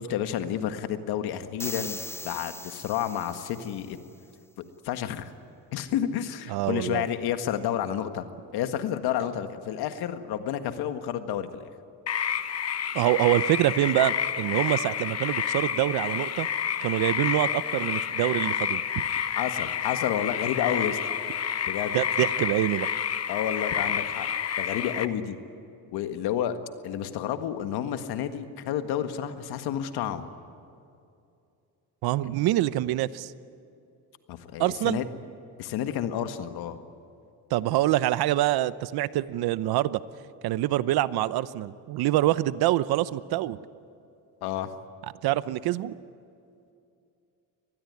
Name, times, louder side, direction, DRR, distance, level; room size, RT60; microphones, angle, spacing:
voice 1, 0.0-2.0 2.2-4.0 4.8-5.3 5.7-8.3 8.5-11.7 19.4-21.0 21.7-22.0 23.3-24.3 24.6-25.4 25.9-26.6 26.8-30.3 32.2-32.3 34.3-35.1 35.6-36.8 44.4-44.7, left 10 dB, 80° left, 9 dB, 1.7 m, -30 dB
sound 1, 1.6-3.9, left 2 dB, 5° left, 0.5 m, -39 dB
voice 2, 6.5-7.0 12.9-16.5 16.8-19.1 21.9-22.9 32.0-33.3 34.6-35.0 37.5-40.0 40.4-43.6 45.2-45.9, right 15 dB, 75° right, 16 dB, 0.9 m, -25 dB
sound 2, 12.1-25.1, left 8 dB, 40° left, 1.2 m, -29 dB
24.5 x 20.0 x 9.7 m, 2.6 s
cardioid pair, 105°, 37 cm